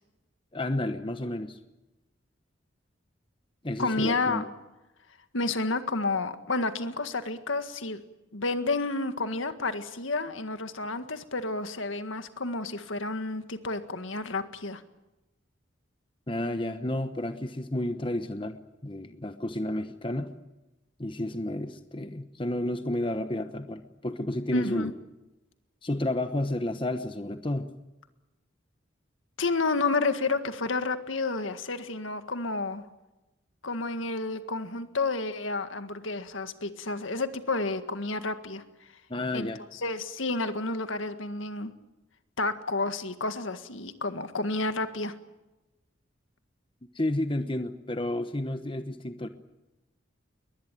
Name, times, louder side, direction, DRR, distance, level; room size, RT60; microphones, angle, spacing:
voice 1, 0.5-1.6 3.6-4.5 16.3-20.3 21.0-24.9 25.8-27.7 39.1-39.6 46.9-49.3, left 1 dB, 25° left, 9 dB, 1.0 m, -31 dB
voice 2, 3.8-4.5 5.3-8.0 8.3-14.8 24.5-24.9 29.4-32.8 33.6-38.6 39.3-41.7 42.4-45.1, left 3 dB, 80° left, 9 dB, 1.8 m, -30 dB
22.0 x 20.5 x 9.1 m, 1.0 s
head